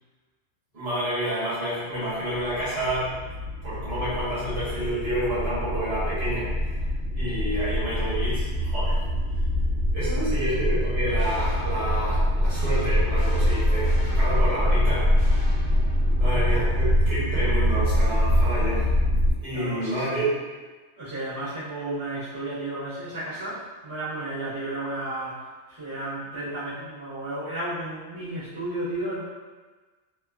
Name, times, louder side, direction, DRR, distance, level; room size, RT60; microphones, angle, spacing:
voice 1, 0.7-3.1 3.6-6.5 7.1-9.0 9.9-15.3 16.2-18.9 19.4-20.3, right 1 dB, 30° right, -12 dB, 1.2 m, -29 dB
sound 1, 2.4-19.3, equal, 50° right, 1.6 m, -24 dB
sound 2, 11.2-16.5, equal, 80° left, 1.1 m, -43 dB
voice 2, 19.5-20.2 21.0-29.2, right 1 dB, 70° right, -12 dB, 1.4 m, -33 dB
3.2 x 2.1 x 2.3 m, 1.3 s
omnidirectional pair, 1.2 m